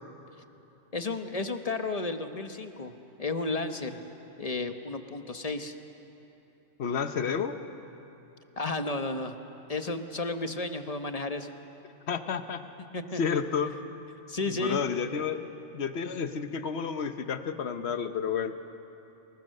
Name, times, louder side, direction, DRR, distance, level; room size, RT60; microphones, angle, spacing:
voice 1, 0.9-2.9 3.2-4.0 4.4-5.7 8.6-9.4 9.7-11.5 12.9-13.4 14.3-14.8, left 3 dB, 35° left, 7 dB, 1.1 m, -32 dB
voice 2, 6.8-7.6 12.1-12.6 13.2-13.7 14.5-15.5 15.7-18.5, left 6 dB, 65° left, 9 dB, 1.3 m, -30 dB
29.0 x 21.5 x 6.6 m, 3.0 s
omnidirectional pair, 1.2 m